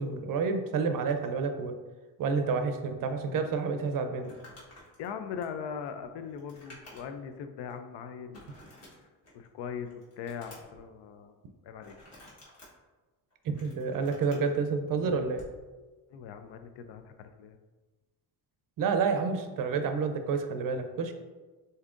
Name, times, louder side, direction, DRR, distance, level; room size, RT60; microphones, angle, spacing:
voice 1, 0.0-1.8 2.2-4.3 13.4-15.4 18.8-21.1, right 5 dB, 55° right, 7 dB, 0.5 m, -29 dB
Crumpling crinkling, 4.1-7.3 7.7-7.8 8.3-9.5 9.9-10.8 11.8-12.7 13.3-14.5 15.3-15.6, left 1 dB, 40° left, 1.3 m, -52 dB
voice 2, 5.0-8.8 9.3-11.4 11.6-11.9 15.0-15.3 16.1-17.6, left 7 dB, 85° left, 8 dB, 0.6 m, -40 dB
7.0 x 2.8 x 2.5 m, 1.3 s
cardioid pair, 155°, 41 cm